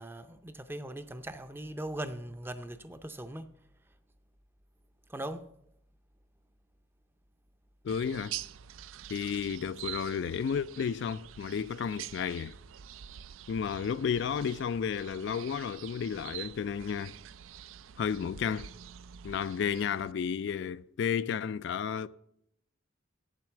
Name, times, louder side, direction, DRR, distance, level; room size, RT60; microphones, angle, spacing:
voice 1, 0.0-3.5 5.1-5.5, right 1 dB, 10° right, 0.5 m, -40 dB
voice 2, 7.8-8.4 9.1-12.5 13.5-17.1 18.0-18.7 19.2-22.1, left 7 dB, 60° left, 0.3 m, -32 dB
sound 1, 7.9-20.1, right 11 dB, 75° right, 0.4 m, -46 dB
8.9 x 7.6 x 7.2 m
head